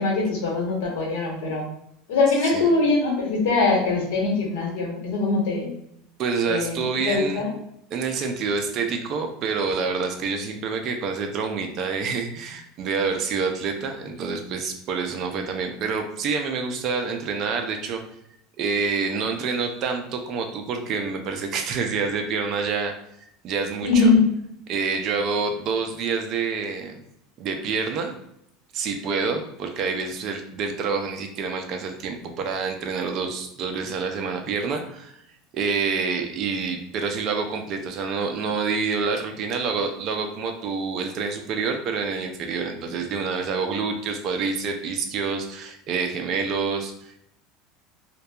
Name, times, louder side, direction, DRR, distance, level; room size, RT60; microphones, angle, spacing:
voice 1, 0.0-1.7 2.1-5.7 6.4-6.8 7.0-7.5 23.8-24.3, left 3 dB, 85° left, -2 dB, 1.0 m, -22 dB
voice 2, 6.2-7.4 7.9-18.0 18.6-22.9 23.4-24.1 24.7-27.0 27.4-28.1 28.7-35.2 35.5-47.2, right 5 dB, 45° right, 4 dB, 0.4 m, -27 dB
2.6 x 2.2 x 2.3 m, 0.77 s
supercardioid pair, 135°, 0 cm